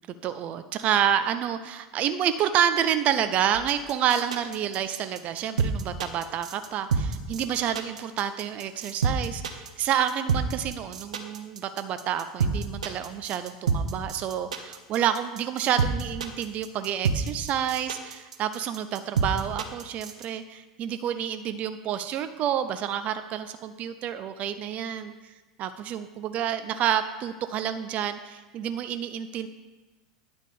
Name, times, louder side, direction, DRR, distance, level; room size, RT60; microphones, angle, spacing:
voice 1, 0.2-25.3 25.6-29.5, right 9 dB, 40° right, 10 dB, 0.4 m, -29 dB
sound 1, 3.5-20.3, right 5 dB, 80° right, 0.7 m, -28 dB
9.9 x 3.5 x 6.7 m, 1.2 s
hypercardioid pair, 85°, 4 cm